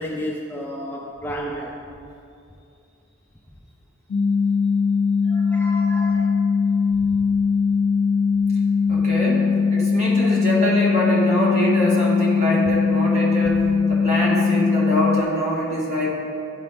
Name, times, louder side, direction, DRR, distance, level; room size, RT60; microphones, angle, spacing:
voice 1, 0.0-1.7 5.3-6.3, equal, 10° left, -2 dB, 0.4 m, -32 dB
sound 1, 4.1-15.2, left 5 dB, 75° left, 0.3 m, -20 dB
voice 2, 8.9-16.1, equal, 35° right, -6 dB, 1.7 m, -24 dB
11.5 x 3.9 x 3.5 m, 2.6 s
head